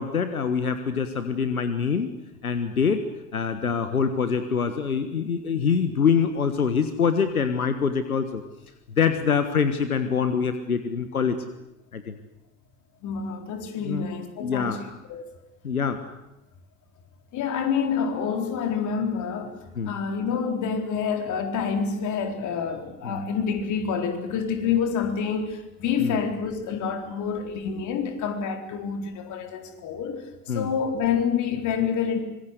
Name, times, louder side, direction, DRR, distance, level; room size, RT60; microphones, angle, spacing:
voice 1, 0.0-2.1 2.4-3.0 3.3-8.4 9.0-11.4 11.9-12.1 13.8-14.1 14.4-14.8 15.6-16.0 19.8-19.9 23.0-23.2 26.0-26.2 30.5-30.7, left 6 dB, 85° left, 10 dB, 1.5 m, -24 dB
voice 2, 13.0-15.2 17.3-19.5 19.8-32.2, left 6 dB, 45° left, 5 dB, 4.2 m, -27 dB
25.5 x 22.0 x 8.1 m, 0.89 s
figure-of-eight pair, 75°, 43 cm